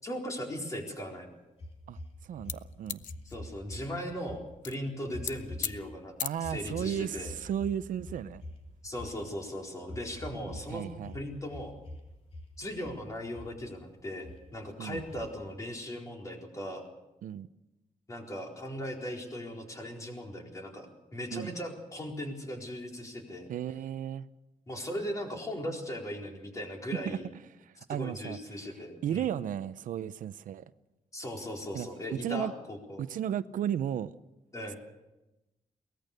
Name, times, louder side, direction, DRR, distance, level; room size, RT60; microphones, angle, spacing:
voice 1, 0.0-1.3 3.2-6.1 6.4-7.4 8.8-10.9 11.1-11.7 12.6-16.9 18.1-23.5 24.7-27.3 27.9-29.3 31.1-33.0 34.5-34.8, equal, 25° left, 1 dB, 4.2 m, -38 dB
sound 1, 1.6-3.8 4.1-4.4 5.1-5.9 6.3-9.3 9.8-10.7 11.0-12.0 12.3-13.0 13.3-13.8 14.2-14.4 14.9-15.5, left 1 dB, 50° left, 3.6 m, -44 dB
voice 2, 1.9-3.0 6.2-8.4 10.4-11.2 14.8-15.0 17.2-17.5 21.3-21.5 23.5-24.3 27.0-27.2 27.6-28.4 29.0-30.6 31.7-31.9 32.2-32.5 33.0-34.2, right 9 dB, 85° right, 14 dB, 0.7 m, -34 dB
sound 2, 2.5-3.8 4.6-4.8 5.1-5.3 5.6-5.7 6.2-6.3, left 9 dB, 80° left, 0.8 m, -34 dB
23.0 x 19.0 x 6.7 m, 0.99 s
wide cardioid pair, 165°, 13 cm